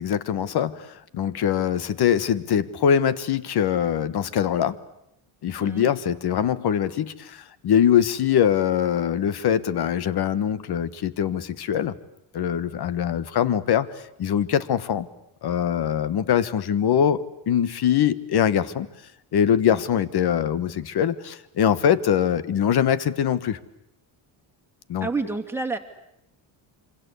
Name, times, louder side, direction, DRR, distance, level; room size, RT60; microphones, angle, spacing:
voice 1, 0.0-4.8 5.4-12.0 12.3-13.9 14.2-15.1 15.4-18.9 19.3-23.6 24.9-25.1, left 9 dB, 50° left, 16 dB, 1.5 m, -23 dB
voice 2, 5.6-5.9 19.7-19.8 25.0-25.8, right 3 dB, 5° right, 1 dB, 2.5 m, -29 dB
26.5 x 26.0 x 8.4 m, 0.79 s
cardioid pair, 135°, 48 cm